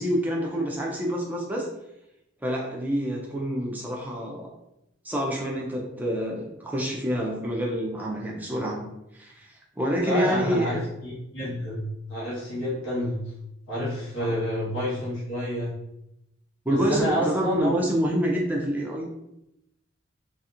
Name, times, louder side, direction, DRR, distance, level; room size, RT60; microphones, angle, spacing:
voice 1, 0.0-1.7 2.4-4.5 5.0-8.8 9.1-10.8 14.2-14.4 16.7-19.1, equal, 10° right, -2 dB, 0.4 m, -27 dB
voice 2, 10.0-13.2 13.7-15.7 16.7-17.7, equal, 70° left, -9 dB, 1.2 m, -29 dB
2.8 x 2.5 x 2.4 m, 0.85 s
head